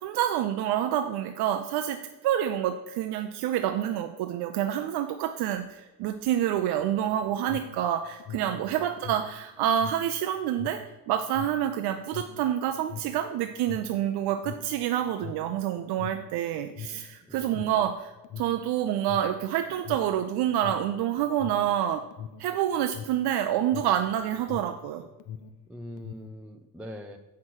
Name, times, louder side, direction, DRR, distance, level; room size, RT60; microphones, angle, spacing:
voice 1, 0.0-10.8 11.1-22.0 22.4-25.0, right 10 dB, 90° right, 7 dB, 0.7 m, -28 dB
Alarm, 7.2-24.9 25.1-26.4, left 8 dB, 55° left, 0.6 m, -42 dB
voice 2, 8.4-8.8 17.3-17.7 25.7-27.2, equal, 5° right, 3 dB, 0.4 m, -43 dB
7.6 x 5.9 x 6.3 m, 1.1 s
cardioid pair, 155°, 37 cm